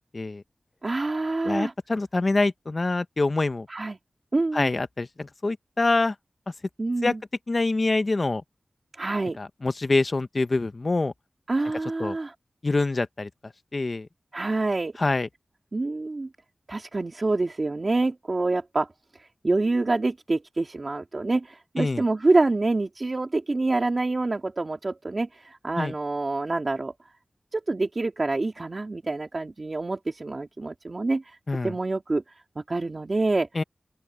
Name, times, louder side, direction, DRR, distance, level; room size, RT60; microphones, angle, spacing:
voice 1, 0.8-1.7 3.7-4.0 4.3-4.7 6.8-7.2 8.9-9.4 11.5-12.3 14.3-15.0 15.7-16.3 16.7-26.9 27.5-31.4 31.6-32.2 32.6-33.5, right 2 dB, 45° right, 2.5 m, -26 dB
voice 2, 1.4-3.7 4.5-6.1 7.0-7.1 7.5-8.4 9.4-11.1 12.0-12.2 12.6-13.3 13.7-14.1 15.0-15.3 21.8-22.0 25.8-25.9 31.5-31.7 33.5-33.6, left 3 dB, 45° left, 0.9 m, -25 dB
open air
wide cardioid pair, 90°, 0 cm